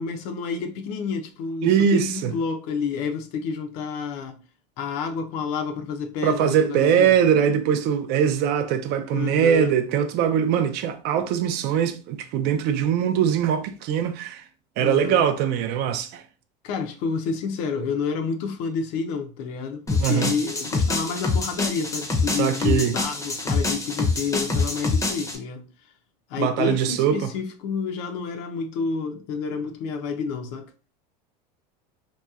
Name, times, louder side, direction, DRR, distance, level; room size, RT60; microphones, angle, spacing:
voice 1, 0.0-4.4 4.8-7.2 9.1-9.7 14.8-15.2 16.6-25.7 26.3-30.7, left 5 dB, 65° left, 0.6 m, -29 dB
voice 2, 1.6-2.3 6.2-14.4 14.8-16.2 20.0-20.3 22.4-22.9 26.4-27.3, right 8 dB, 55° right, 0.4 m, -22 dB
sound 1, 19.9-25.4, left 3 dB, 15° left, 0.6 m, -25 dB
2.9 x 2.2 x 2.3 m
supercardioid pair, 120°, 20 cm